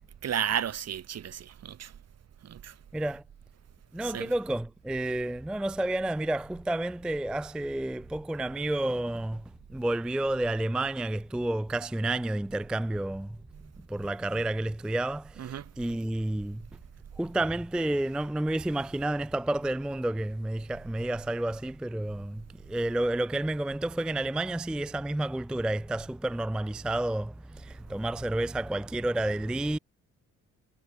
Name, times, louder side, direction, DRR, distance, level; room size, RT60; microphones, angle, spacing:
voice 1, 0.2-1.9 2.4-2.7 4.0-4.3 15.4-15.7, right 9 dB, 55° right, 2.4 m, -33 dB
voice 2, 2.9-3.2 3.9-9.4 9.7-16.6 17.2-29.8, right 1 dB, 5° right, 0.3 m, -30 dB
cardioid pair, 90°, 30 cm